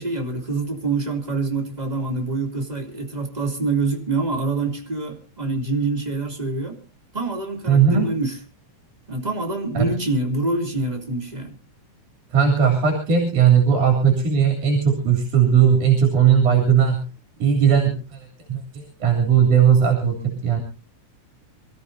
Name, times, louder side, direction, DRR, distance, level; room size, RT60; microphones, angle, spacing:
voice 1, 0.0-6.8 7.1-8.4 9.1-11.6, right 3 dB, 15° right, 3 dB, 2.7 m, -26 dB
voice 2, 7.7-8.1 9.7-9.9 12.3-17.0 17.4-20.6, right 7 dB, 85° right, 1 dB, 4.7 m, -18 dB
27.0 x 14.0 x 2.7 m, 0.34 s
omnidirectional pair, 3.4 m